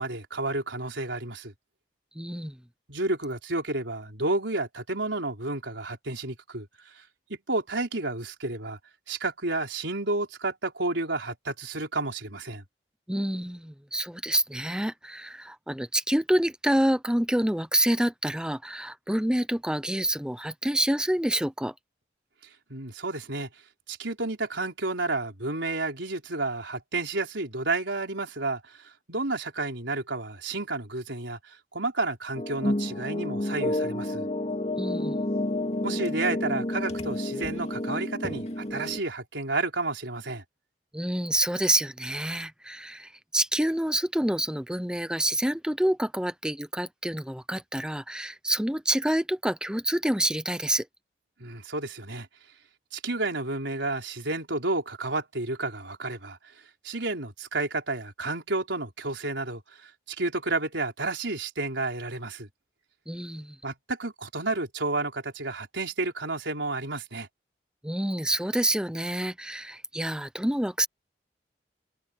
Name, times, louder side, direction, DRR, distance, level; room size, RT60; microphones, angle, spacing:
voice 1, 0.0-1.5 2.9-7.0 7.3-8.8 9.1-12.6 22.7-23.5 23.9-34.3 35.8-40.4 51.4-52.3 52.9-56.4 56.8-62.5 63.6-67.3, right 2 dB, 85° right, 4.4 m, -31 dB
voice 2, 2.2-2.6 13.1-21.7 34.8-35.2 40.9-50.9 63.1-63.6 67.8-70.9, right 1 dB, 5° right, 0.7 m, -27 dB
sound 1, 32.4-39.0, left 1 dB, 35° left, 2.2 m, -30 dB
head